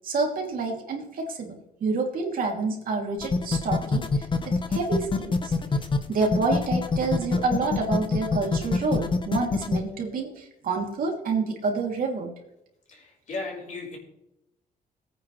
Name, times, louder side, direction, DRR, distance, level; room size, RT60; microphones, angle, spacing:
voice 1, 0.0-5.5 6.1-12.3, right 3 dB, 60° right, 0 dB, 3.0 m, -28 dB
sound 1, 3.2-9.8, left 4 dB, 30° left, 1.1 m, -25 dB
voice 2, 9.8-10.1 12.9-14.0, left 3 dB, 50° left, -1 dB, 5.0 m, -37 dB
20.0 x 9.4 x 3.3 m, 0.84 s
cardioid pair, 150°, 16 cm